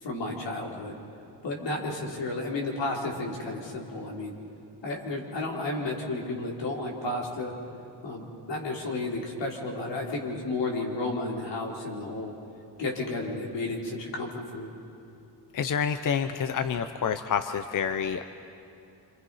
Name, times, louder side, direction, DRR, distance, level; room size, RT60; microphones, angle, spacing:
voice 1, 0.0-1.0 1.4-4.3 4.8-7.5 8.0-12.3 12.8-14.7, left 2 dB, 85° left, -2 dB, 4.2 m, -32 dB
voice 2, 15.5-18.2, left 7 dB, 45° left, 9 dB, 0.7 m, -28 dB
28.0 x 26.5 x 5.7 m, 2.8 s
wide cardioid pair, 180°, 42 cm